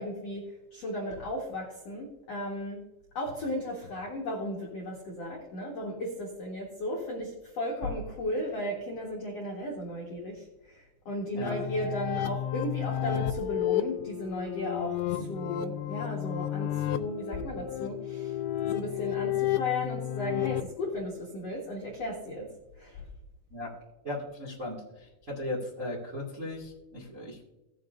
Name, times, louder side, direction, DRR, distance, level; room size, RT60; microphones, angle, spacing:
voice 1, 0.0-2.8 3.1-18.4 18.7-22.5 22.8-23.0, left 1 dB, 65° left, -3 dB, 1.6 m, -35 dB
sound 1, 11.4-20.6, left 12 dB, 80° left, 2.6 m, -32 dB
voice 2, 24.0-27.5, left 1 dB, 40° right, -3 dB, 1.1 m, -37 dB
18.0 x 6.7 x 2.6 m, 1.0 s
omnidirectional pair, 5.4 m